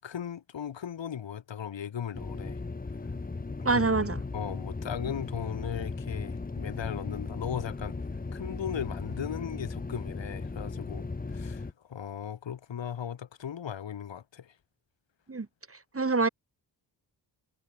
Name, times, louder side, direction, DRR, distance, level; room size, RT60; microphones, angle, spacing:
voice 1, 0.0-2.6 3.6-3.8 4.3-8.0 8.3-14.5, left 8 dB, 80° left, 5.1 m, -37 dB
sound 1, 2.1-11.7, left 3 dB, 20° left, 1.2 m, -37 dB
voice 2, 3.6-4.2 15.3-16.3, right 3 dB, 30° right, 4.2 m, -27 dB
cardioid pair, 85°, 43 cm